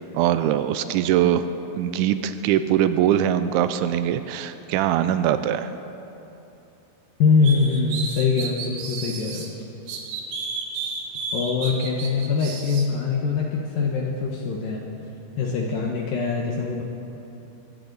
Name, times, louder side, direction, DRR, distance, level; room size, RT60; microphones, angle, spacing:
voice 1, 0.1-1.4 1.7-5.7, right 11 dB, 85° right, 11 dB, 2.8 m, -22 dB
voice 2, 7.2-9.5 11.3-14.8 15.4-16.8, left 5 dB, 70° left, -1 dB, 2.2 m, -23 dB
sound 1, 7.4-9.5 9.9-12.9, right 4 dB, 65° right, 2.6 m, -32 dB
22.0 x 15.5 x 4.0 m, 2.9 s
omnidirectional pair, 5.4 m